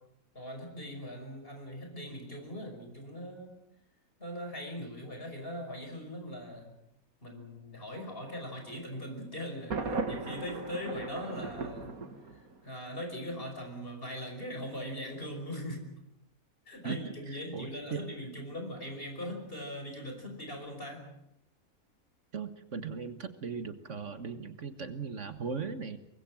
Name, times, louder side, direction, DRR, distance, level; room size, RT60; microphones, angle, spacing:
voice 1, 0.3-3.6 4.2-6.7 7.2-12.0 12.4-15.9 16.7-21.1, equal, 40° left, 4 dB, 5.8 m, -40 dB
Thunder, 9.7-12.7, right 3 dB, 85° right, 2.6 m, -37 dB
voice 2, 17.3-18.1 22.3-26.0, right 5 dB, 60° right, 9 dB, 1.7 m, -38 dB
24.5 x 20.5 x 7.7 m, 0.81 s
omnidirectional pair, 1.5 m